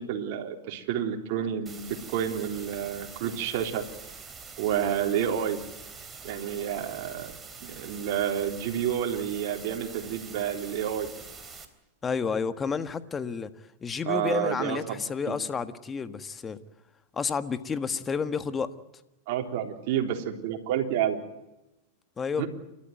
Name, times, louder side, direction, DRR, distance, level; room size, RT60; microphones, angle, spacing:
voice 1, 0.0-3.8 4.6-5.6 6.2-7.3 7.6-11.1 14.1-15.0 15.3-15.4 19.3-21.2 22.4-22.5, right 9 dB, 60° right, 3.8 m, -29 dB
sound 1, 1.7-11.7, right 5 dB, 20° right, 3.4 m, -45 dB
voice 2, 12.0-13.5 13.8-16.6 17.1-18.7 22.2-22.5, left 5 dB, 20° left, 1.6 m, -30 dB
29.0 x 13.5 x 9.3 m
hypercardioid pair, 110°, 0 cm